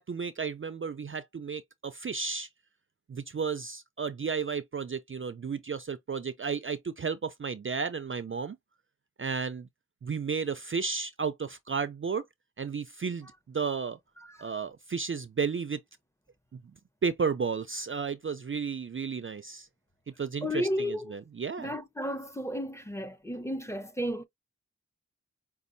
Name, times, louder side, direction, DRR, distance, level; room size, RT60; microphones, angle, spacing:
voice 1, 0.0-2.5 3.1-8.6 9.2-9.7 10.0-12.3 12.6-14.0 14.4-15.8 16.5-16.6 17.0-19.7 20.2-21.7, right 5 dB, 40° right, 0.4 m, -33 dB
voice 2, 14.2-14.5 20.4-21.2 21.6-24.2, equal, 10° left, 0.6 m, -33 dB
5.2 x 2.3 x 2.6 m
wide cardioid pair, 70°, 31 cm